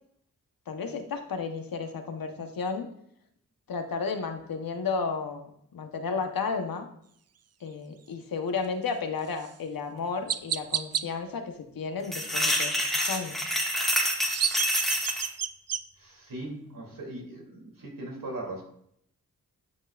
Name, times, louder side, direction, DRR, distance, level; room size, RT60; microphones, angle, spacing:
voice 1, 0.7-2.9 3.7-6.9 7.6-13.4, left 5 dB, 80° left, 5 dB, 1.1 m, -33 dB
Chirp tweet, 9.4-9.5 10.3-11.0 14.0-15.8, right 8 dB, 45° right, 0.4 m, -30 dB
sound 1, 12.0-15.3, equal, ahead, 1.7 m, -27 dB
voice 2, 16.0-18.6, right 1 dB, 70° right, -2 dB, 2.8 m, -39 dB
11.5 x 5.4 x 2.4 m, 0.70 s
cardioid pair, 60°, 34 cm